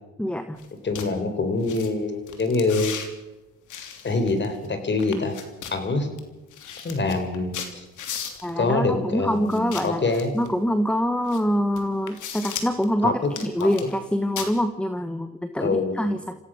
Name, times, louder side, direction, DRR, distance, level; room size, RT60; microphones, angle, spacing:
voice 1, 0.2-0.7 8.4-10.0 10.3-13.1 13.4-16.4, equal, 5° left, 9 dB, 1.3 m, -25 dB
sound 1, 0.6-0.7 0.9-1.1 1.6-1.9 2.3-3.1 3.7-4.7 5.0-5.8 6.2-6.3 6.5-8.5 9.5-10.5 11.3-11.4 11.7-12.8 13.2-14.0 14.4-14.5, left 8 dB, 80° left, 3.1 m, -36 dB
voice 2, 0.8-2.9 4.0-5.4 5.7-6.1 6.8-7.9 8.6-10.3 13.0-13.1 13.6-13.7 15.6-16.0, left 3 dB, 35° left, 8 dB, 4.3 m, -25 dB
27.5 x 16.0 x 6.5 m, 1.1 s
cardioid pair, 90°, 30 cm